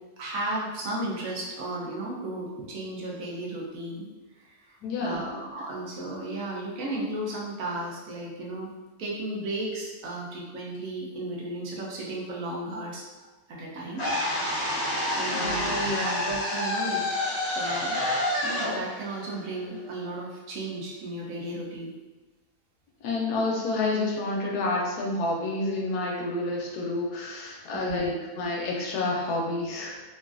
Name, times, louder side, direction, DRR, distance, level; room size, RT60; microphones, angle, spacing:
voice 1, 0.2-4.1 4.4-8.7 9.0-14.0 15.1-17.0 17.5-18.0 18.4-21.9 27.7-28.2, right 1 dB, 65° right, -3 dB, 1.0 m, -34 dB
voice 2, 4.8-5.4 15.3-16.2 23.0-30.0, left 2 dB, 80° left, -2 dB, 1.1 m, -29 dB
sound 1, 14.0-20.1, left 1 dB, 55° left, 0.8 m, -29 dB
3.0 x 2.5 x 2.4 m, 1.2 s
omnidirectional pair, 1.7 m